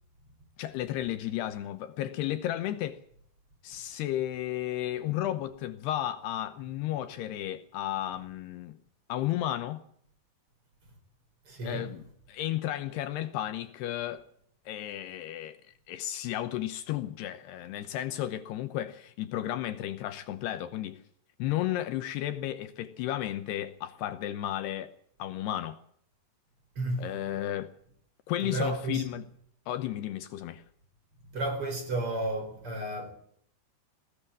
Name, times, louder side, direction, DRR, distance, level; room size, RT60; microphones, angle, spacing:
voice 1, 0.6-3.0 3.6-8.8 9.1-9.8 11.6-14.2 14.7-15.6 15.9-21.0 21.4-24.9 25.2-25.8 27.0-27.7 28.3-29.3 29.7-30.6, left 13 dB, 75° left, 2.8 m, -33 dB
voice 2, 11.5-11.9 26.8-27.1 28.5-29.0 31.3-33.1, right 2 dB, 30° right, 4.7 m, -32 dB
21.0 x 17.5 x 7.3 m
omnidirectional pair, 5.1 m